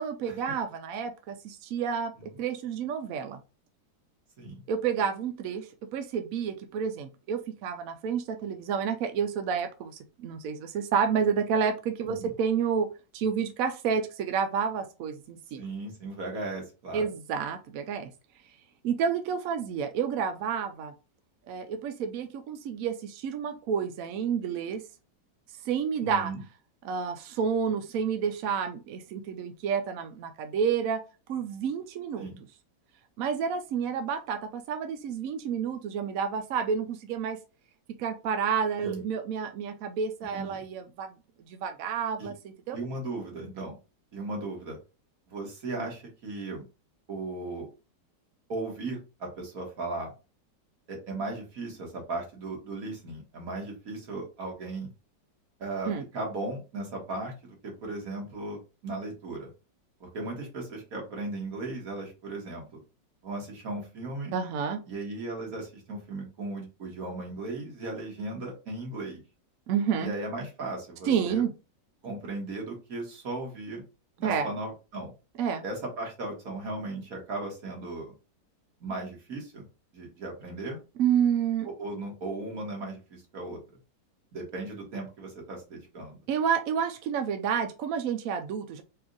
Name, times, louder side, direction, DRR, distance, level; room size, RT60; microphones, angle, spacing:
voice 1, 0.0-3.4 4.7-12.9 13.1-15.7 16.9-18.1 18.8-20.9 21.5-24.8 25.7-26.3 26.8-31.0 31.3-32.3 33.2-37.4 38.0-41.1 41.5-42.8 55.9-56.0 64.3-64.8 69.7-70.1 71.1-71.5 74.2-74.5 75.4-75.6 81.0-81.7 86.3-88.8, right 7 dB, 70° right, 7 dB, 0.8 m, -29 dB
voice 2, 15.6-17.0 26.0-26.4 32.2-32.4 38.8-39.0 40.3-40.6 42.2-42.3 42.7-43.8 44.1-44.8 45.3-46.6 47.1-47.7 48.5-50.1 50.9-54.9 55.6-59.5 60.0-62.8 63.2-64.3 64.9-69.2 70.0-71.4 72.0-73.8 74.2-75.1 75.6-78.1 78.8-79.6 79.9-80.8 81.6-83.6 84.3-86.2, right 2 dB, 55° right, 0 dB, 1.8 m, -37 dB
4.3 x 2.5 x 3.8 m, 0.30 s
omnidirectional pair, 1.9 m